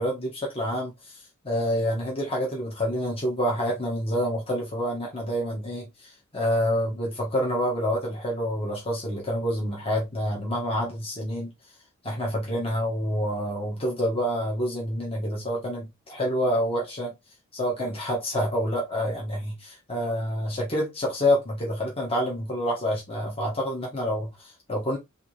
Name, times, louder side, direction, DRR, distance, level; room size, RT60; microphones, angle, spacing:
voice 1, 0.0-11.5 12.0-17.1 17.5-25.0, equal, 25° left, 1.6 m, -27 dB
4.8 x 3.0 x 3.4 m
head